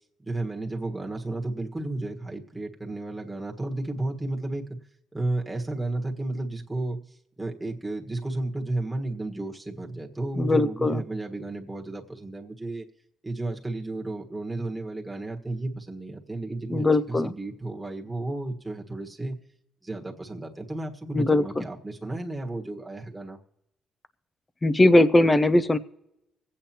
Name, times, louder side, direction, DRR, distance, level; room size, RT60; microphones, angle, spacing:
voice 1, 0.3-4.8 5.1-7.0 7.4-12.8 13.2-19.4 19.8-23.4, right 2 dB, 10° right, 0 dB, 1.6 m, -32 dB
voice 2, 10.4-11.0 16.7-17.3 21.1-21.7 24.6-25.8, left 2 dB, 20° left, 14 dB, 0.6 m, -20 dB
25.0 x 8.6 x 3.0 m, 0.88 s
cardioid pair, 90°, 0 cm